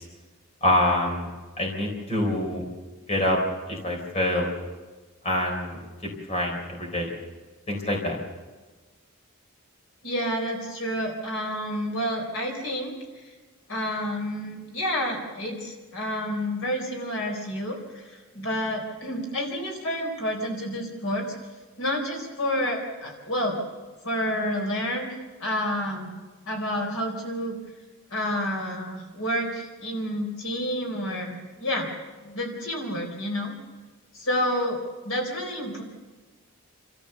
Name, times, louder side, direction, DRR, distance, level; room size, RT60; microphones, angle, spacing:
voice 1, 0.6-1.3 1.6-2.6 3.1-3.4 3.7-4.5 5.2-5.8 6.3-7.1 7.7-8.2, left 1 dB, 30° left, 1 dB, 3.9 m, -25 dB
voice 2, 10.0-13.3 13.7-21.3 21.8-23.6 24.0-25.1 25.4-26.1 26.5-27.6 28.1-31.9 32.2-33.5 34.1-35.8, equal, 70° left, 2 dB, 4.1 m, -29 dB
29.0 x 14.0 x 6.8 m, 1.3 s
head